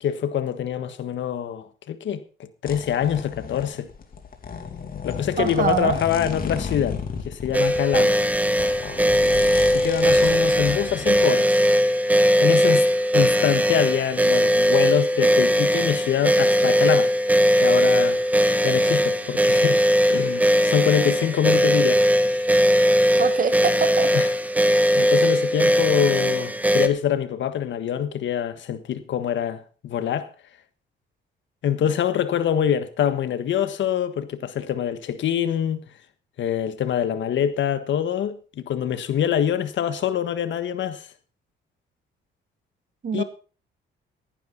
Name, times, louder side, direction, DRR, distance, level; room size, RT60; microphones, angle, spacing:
voice 1, 0.0-2.2 2.6-3.9 5.0-7.0 7.2-8.2 9.7-11.6 12.4-12.8 13.1-17.1 17.6-19.8 20.1-22.4 24.1-24.3 24.9-30.3 31.6-35.8 36.4-41.1 43.1-43.2, left 9 dB, 70° left, 1.5 m, -25 dB
sound 1, 2.7-11.2, left 6 dB, 45° left, 2.7 m, -34 dB
voice 2, 5.4-6.0 23.2-24.1 43.0-43.2, right 6 dB, 45° right, 1.8 m, -24 dB
sound 2, 7.5-26.9, equal, 10° right, 1.5 m, -19 dB
14.5 x 11.0 x 4.1 m
cardioid pair, 90°, 20 cm